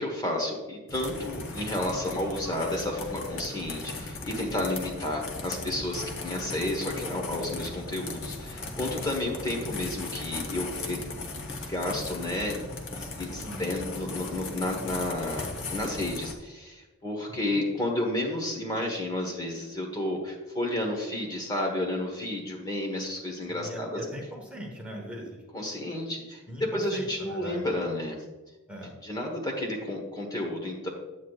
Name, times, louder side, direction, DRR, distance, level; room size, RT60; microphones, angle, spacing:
voice 1, 0.0-11.1 11.7-23.9 25.5-28.2 29.0-30.9, left 1 dB, 20° left, 1 dB, 1.2 m, -31 dB
sound 1, 0.9-16.3, left 3 dB, 55° left, 1.0 m, -37 dB
voice 2, 17.3-17.6 23.5-25.4 26.5-27.7 28.7-29.0, equal, 5° right, -1 dB, 1.1 m, -40 dB
9.2 x 8.4 x 2.4 m, 1.2 s
head